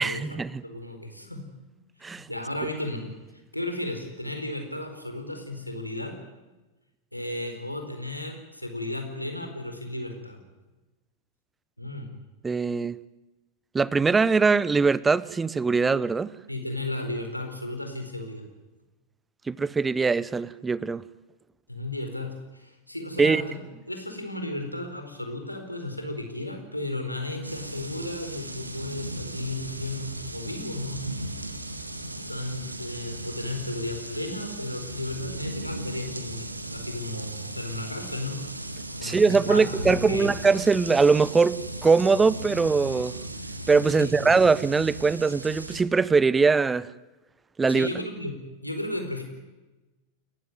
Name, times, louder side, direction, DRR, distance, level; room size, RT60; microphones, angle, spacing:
voice 1, 0.0-0.5 2.0-2.3 12.4-12.9 13.7-16.3 19.5-21.0 23.2-23.4 39.0-43.1 43.7-46.9 47.6-47.9, right 4 dB, 15° right, 0.8 m, -22 dB
voice 2, 0.6-1.5 2.0-3.0 3.5-6.2 7.1-10.4 11.8-12.1 16.5-18.4 21.7-23.6 23.9-31.0 32.3-38.4 38.9-40.3 44.0-44.3 47.6-48.3 48.6-49.2, left 1 dB, 90° left, 4.4 m, -34 dB
sound 1, 27.4-45.8, right 1 dB, 85° right, 2.0 m, -37 dB
29.0 x 15.5 x 9.4 m
figure-of-eight pair, 90°, 0 cm